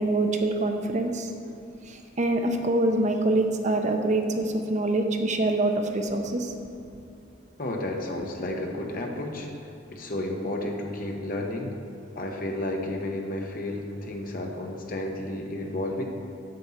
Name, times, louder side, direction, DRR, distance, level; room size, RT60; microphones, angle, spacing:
voice 1, 0.0-1.3 1.9-6.5, right 2 dB, 40° right, 4 dB, 0.6 m, -25 dB
voice 2, 7.6-9.5 9.9-11.8 12.1-16.0, left 1 dB, 45° left, 1 dB, 1.0 m, -32 dB
7.6 x 5.4 x 7.2 m, 2.8 s
head